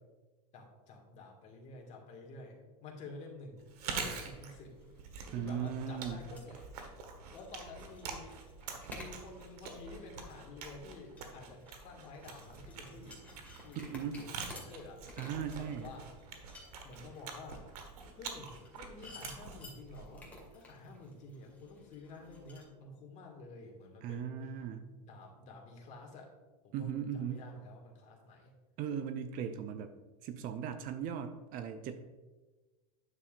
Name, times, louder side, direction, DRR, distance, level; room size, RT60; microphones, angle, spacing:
voice 1, 0.5-4.7 5.4-6.6 7.3-8.4 8.9-15.0 15.6-16.1 16.8-17.7 18.2-18.5 18.8-24.3 24.9-26.3 26.6-28.5, left 3 dB, 35° left, 0 dB, 1.9 m, -50 dB
Chewing mastication, 3.6-20.5, right 5 dB, 75° right, 1.3 m, -46 dB
sound 1, 4.7-22.6, left 2 dB, 10° left, 2.2 m, -55 dB
voice 2, 5.3-6.2 13.7-14.2 15.2-15.9 24.0-24.9 26.7-27.4 28.8-29.9 30.2-31.9, right 8 dB, 45° right, 9 dB, 0.6 m, -38 dB
9.7 x 6.9 x 2.5 m, 1.2 s
hypercardioid pair, 115°, 20 cm